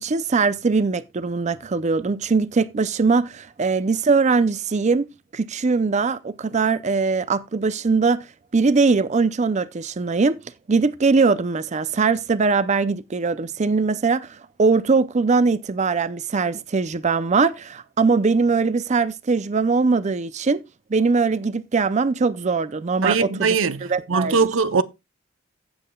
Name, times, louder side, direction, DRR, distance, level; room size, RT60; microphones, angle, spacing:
voice 1, 0.0-5.1 5.3-8.3 8.5-10.4 10.7-20.6 20.9-23.6 23.8-24.4, right 4 dB, 35° right, 0.5 m, -21 dB
voice 2, 23.0-24.8, right 5 dB, 85° right, 0.7 m, -21 dB
15.5 x 7.6 x 2.3 m
head